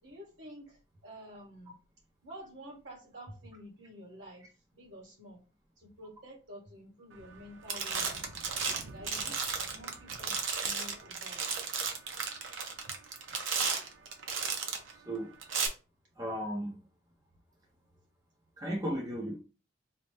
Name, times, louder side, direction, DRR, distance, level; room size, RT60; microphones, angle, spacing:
voice 1, 0.0-1.8 2.2-5.4 5.8-8.3 8.9-11.4, equal, 70° right, -1 dB, 1.5 m, -50 dB
sound 1, 7.2-7.4 7.7-14.9 15.4-15.7, right 5 dB, 90° right, 0.7 m, -34 dB
voice 2, 16.2-16.8 18.6-19.4, equal, 20° right, 0 dB, 0.6 m, -35 dB
4.0 x 2.1 x 3.3 m, 0.33 s
head